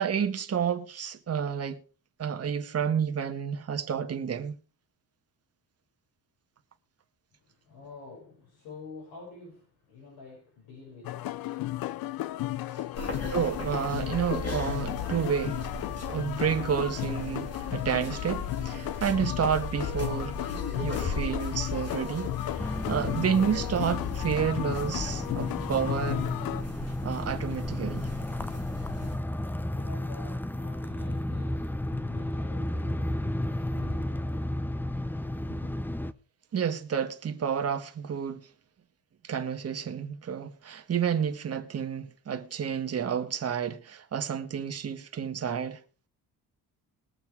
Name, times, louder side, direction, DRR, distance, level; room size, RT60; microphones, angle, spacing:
voice 1, 0.0-1.8 2.2-4.6 13.3-15.6 16.1-20.4 20.8-26.2 27.0-28.1 36.5-38.4 39.2-45.8, right 7 dB, 40° right, 1.7 m, -30 dB
voice 2, 7.3-13.3 28.2-35.8, left 4 dB, 90° left, 6.9 m, -50 dB
sound 1, 11.0-26.6, left 15 dB, 65° left, 0.6 m, -35 dB
sound 2, 12.9-29.2, left 4 dB, 40° left, 5.0 m, -37 dB
sound 3, 22.6-36.1, left 1 dB, 5° left, 0.7 m, -33 dB
21.0 x 7.3 x 4.8 m
cardioid pair, 115°, 39 cm